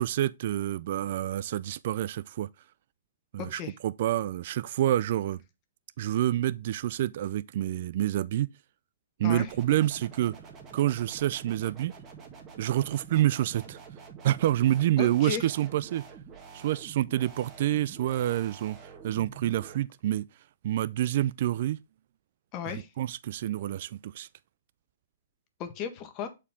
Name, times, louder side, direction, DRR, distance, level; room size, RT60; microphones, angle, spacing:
voice 1, 0.0-2.5 3.3-5.4 6.0-8.5 9.2-10.3 10.7-12.0 12.6-13.8 14.2-16.0 16.5-20.3 20.6-21.8 23.0-24.3, right 13 dB, 55° right, 0.3 m, -28 dB
voice 2, 3.4-3.8 9.2-9.5 15.0-15.5 22.5-22.9 25.6-26.3, left 8 dB, 35° left, 1.4 m, -35 dB
sound 1, 9.5-19.8, right 6 dB, 25° right, 1.8 m, -47 dB
7.3 x 4.6 x 3.4 m
hypercardioid pair, 135°, 0 cm